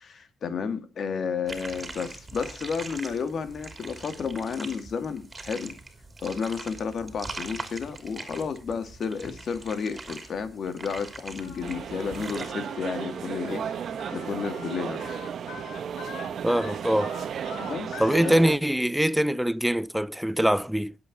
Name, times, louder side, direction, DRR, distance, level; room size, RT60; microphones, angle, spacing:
voice 1, 0.0-5.8 6.2-13.7 14.1-15.2 17.6-18.4, left 6 dB, 55° left, 2.4 m, -32 dB
sound 1, 1.5-12.5, right 3 dB, 25° right, 3.0 m, -42 dB
Singing, 11.4-18.3, left 6 dB, 85° left, 3.4 m, -44 dB
sound 2, 11.6-18.6, right 8 dB, 60° right, 1.3 m, -34 dB
voice 2, 16.4-17.1 18.0-20.9, equal, 5° right, 0.6 m, -23 dB
19.5 x 8.1 x 4.0 m
cardioid pair, 90°, 0 cm